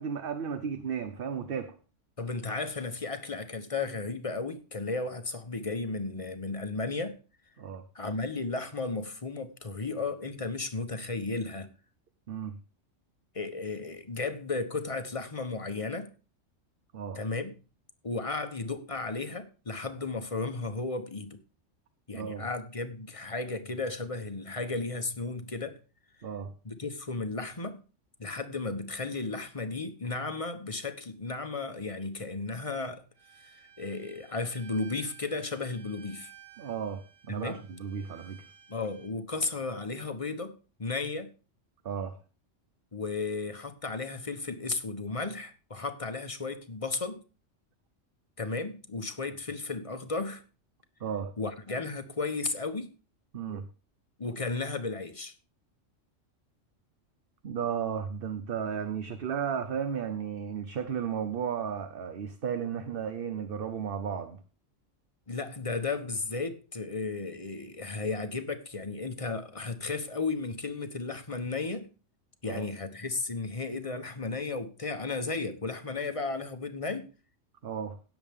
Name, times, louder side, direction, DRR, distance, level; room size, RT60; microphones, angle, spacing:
voice 1, 0.0-1.7 7.6-7.8 12.3-12.6 16.9-17.2 22.1-22.4 26.2-26.5 36.6-38.4 41.8-42.2 51.0-51.4 53.3-53.7 57.4-64.4 72.4-72.7 77.6-78.0, right 7 dB, 50° right, 0.9 m, -34 dB
voice 2, 2.2-7.2 7.9-11.7 13.3-16.1 17.1-17.5 18.0-21.4 22.1-25.8 26.6-27.8 28.2-33.0 33.4-36.3 37.3-37.6 38.7-41.3 42.9-47.2 48.4-50.4 51.4-52.9 54.2-55.3 65.3-71.9 72.4-77.1, left 3 dB, 30° left, 1.1 m, -34 dB
Bowed string instrument, 33.2-39.1, right 8 dB, 85° right, 1.8 m, -55 dB
17.0 x 7.1 x 3.6 m
omnidirectional pair, 1.3 m